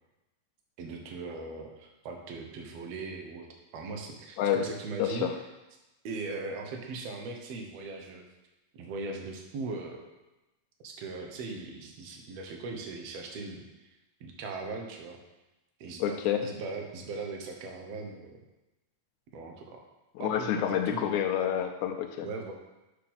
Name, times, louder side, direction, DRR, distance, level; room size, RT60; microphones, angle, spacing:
voice 1, 0.8-3.5 3.7-5.3 6.0-8.2 8.7-10.1 10.8-13.9 14.2-15.2 15.8-16.1 16.4-18.4 19.3-19.8 20.2-21.1 22.2-22.5, right 3 dB, 60° right, 2 dB, 2.0 m, -39 dB
voice 2, 5.0-5.3 16.0-16.5 20.2-22.3, left 9 dB, 80° left, 5 dB, 1.9 m, -28 dB
6.7 x 6.5 x 5.6 m, 1.0 s
omnidirectional pair, 3.7 m